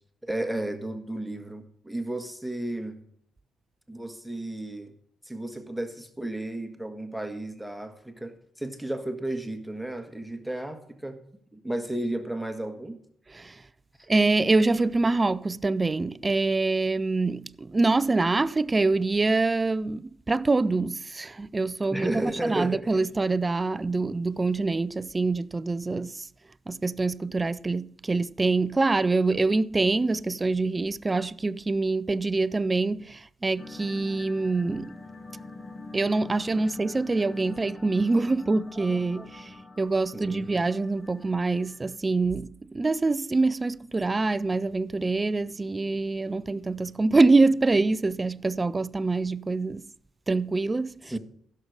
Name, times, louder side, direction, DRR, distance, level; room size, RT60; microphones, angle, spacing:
voice 1, 0.2-3.0 3.9-4.9 5.2-11.2 11.5-13.0 21.9-23.0 38.7-38.8 39.2-39.3 40.1-40.5 51.1-51.2, right 1 dB, ahead, 1.5 m, -33 dB
voice 2, 14.1-26.3 26.7-35.0 35.9-49.9 50.3-51.1, right 3 dB, 20° right, 0.4 m, -25 dB
sound 1, 33.6-42.0, left 3 dB, 20° left, 1.0 m, -44 dB
sound 2, 43.4-48.5, left 2 dB, 50° left, 3.3 m, -61 dB
15.5 x 6.7 x 4.9 m
cardioid pair, 90°, 0 cm